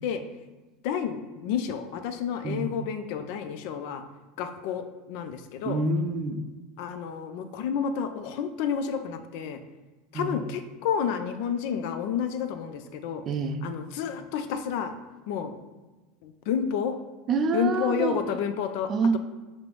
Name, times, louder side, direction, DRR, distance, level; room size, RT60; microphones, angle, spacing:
voice 1, 0.8-4.0 4.4-5.8 6.8-9.6 10.1-13.2 13.6-14.9 15.3-15.5 16.2-17.0 17.5-19.2, left 7 dB, 65° left, 9 dB, 0.3 m, -30 dB
voice 2, 2.4-2.7 5.6-6.4 10.1-10.5 13.3-13.6 17.3-18.2 18.9-19.2, right 4 dB, 40° right, 9 dB, 0.3 m, -27 dB
5.2 x 2.0 x 3.0 m, 1.2 s
supercardioid pair, 110°, 0 cm